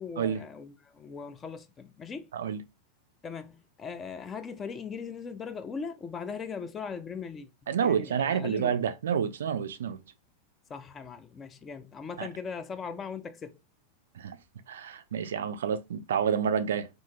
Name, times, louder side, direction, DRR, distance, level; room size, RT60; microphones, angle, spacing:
voice 1, 0.0-2.3 3.2-7.5 7.8-8.7 10.7-13.6, left 5 dB, 20° left, 0.3 m, -39 dB
voice 2, 7.7-10.0 12.2-12.3 14.1-14.4 14.7-16.9, right 7 dB, 65° right, 0.3 m, -29 dB
2.6 x 2.5 x 2.6 m
figure-of-eight pair, 90°, 0 cm